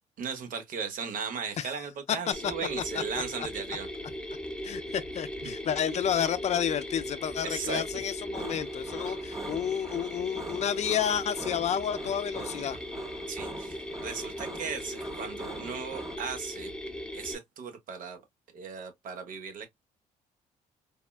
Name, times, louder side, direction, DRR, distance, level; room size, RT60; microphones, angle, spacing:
voice 1, 0.2-3.9 5.4-5.5 7.4-7.8 9.0-9.1 13.3-16.7 17.1-18.2 18.5-19.7, right 6 dB, 60° right, 0.9 m, -37 dB
voice 2, 2.1-2.5 2.9-3.0 3.4-3.5 4.6-12.8, left 9 dB, 45° left, 0.5 m, -30 dB
Mechanisms, 2.3-17.4, left 1 dB, 5° left, 0.9 m, -39 dB
sound 1, 8.3-16.2, right 2 dB, 20° right, 0.6 m, -43 dB
3.5 x 2.1 x 2.2 m
supercardioid pair, 75°, 15 cm